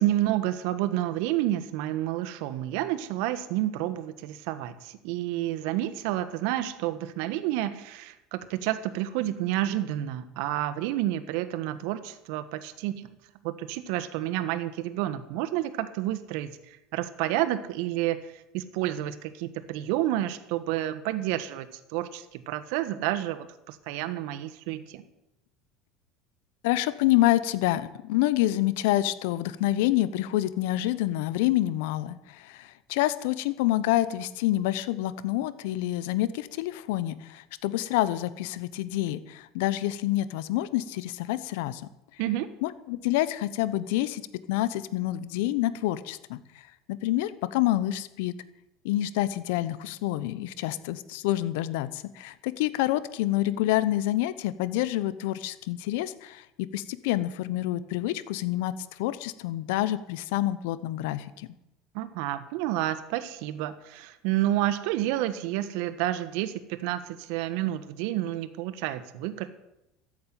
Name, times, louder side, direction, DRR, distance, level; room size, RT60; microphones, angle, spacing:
voice 1, 0.0-13.2 13.4-16.6 16.9-25.0 42.2-42.5 61.9-69.5, right 14 dB, 70° right, 12 dB, 1.3 m, -30 dB
voice 2, 26.6-41.8 42.6-44.2 44.5-46.4 47.0-48.3 48.8-58.7 59.0-61.5, left 15 dB, 75° left, 15 dB, 1.0 m, -27 dB
14.0 x 8.6 x 9.2 m, 0.88 s
hypercardioid pair, 80°, 0 cm